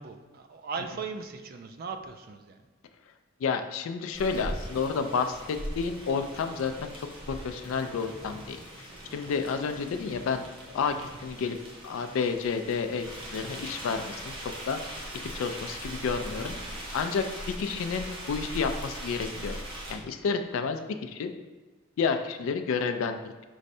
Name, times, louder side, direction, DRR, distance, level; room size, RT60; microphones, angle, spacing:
voice 1, 0.0-2.6, right 5 dB, 45° right, 7 dB, 0.3 m, -38 dB
voice 2, 3.4-8.6 9.1-10.9 11.2-11.6 11.8-13.1 13.3-14.8 15.2-16.6 16.9-19.6 19.9-21.3 22.0-23.3, left 5 dB, 80° left, 7 dB, 0.3 m, -30 dB
sound 1, 4.1-20.0, right 1 dB, 25° right, 0.7 m, -40 dB
5.3 x 3.1 x 2.6 m, 1.3 s
head